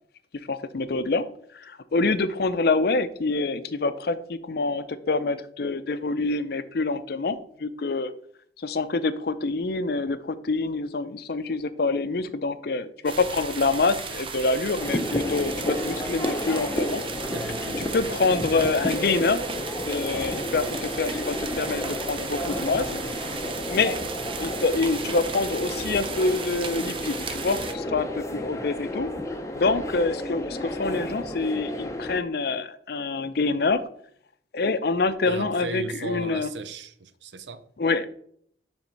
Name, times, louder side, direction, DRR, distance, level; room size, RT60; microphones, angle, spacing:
voice 1, 0.5-1.2 1.5-8.1 8.6-17.0 17.8-19.4 19.9-22.9 23.7-24.0 24.4-29.1 29.6-33.8 34.5-36.5 37.8-38.1, left 3 dB, 60° left, 0.5 m, -26 dB
sound 1, 13.1-27.7, right 5 dB, 30° right, 0.6 m, -35 dB
sound 2, 14.8-32.2, left 1 dB, 15° left, 0.6 m, -32 dB
voice 2, 17.3-18.0 22.9-23.0 35.3-37.7, right 3 dB, 80° right, 0.6 m, -36 dB
7.3 x 3.6 x 5.3 m
head